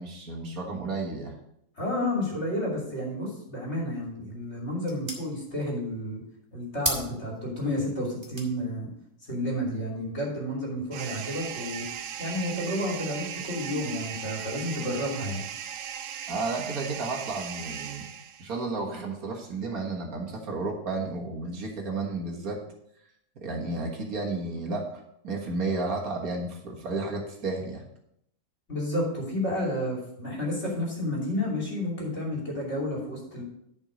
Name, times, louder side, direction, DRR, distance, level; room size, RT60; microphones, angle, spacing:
voice 1, 0.0-1.4 16.3-18.1 18.4-22.6 23.4-27.8, right 3 dB, 65° right, 0 dB, 2.0 m, -32 dB
voice 2, 1.8-6.2 6.5-8.9 9.3-11.9 12.2-15.4 28.7-33.4, left 1 dB, 45° left, -2 dB, 3.2 m, -31 dB
sound 1, 3.8-10.6, right 1 dB, 15° right, 1.8 m, -40 dB
sound 2, 10.9-18.6, right 9 dB, 90° right, 1.2 m, -38 dB
11.0 x 5.4 x 5.1 m, 0.76 s
omnidirectional pair, 1.6 m